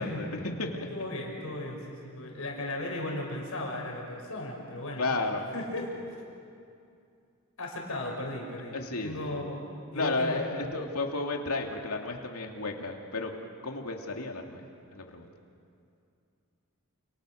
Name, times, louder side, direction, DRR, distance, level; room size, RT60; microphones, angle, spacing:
voice 1, 0.0-0.7 5.0-5.5 8.7-9.5 9.9-13.3 13.6-14.6 14.9-15.3, left 3 dB, 85° left, 2 dB, 2.8 m, -32 dB
voice 2, 0.7-5.0 5.5-6.0 7.6-8.8 9.0-9.6 9.9-10.3, left 1 dB, 70° left, -1 dB, 6.5 m, -36 dB
30.0 x 29.5 x 6.6 m, 2.4 s
head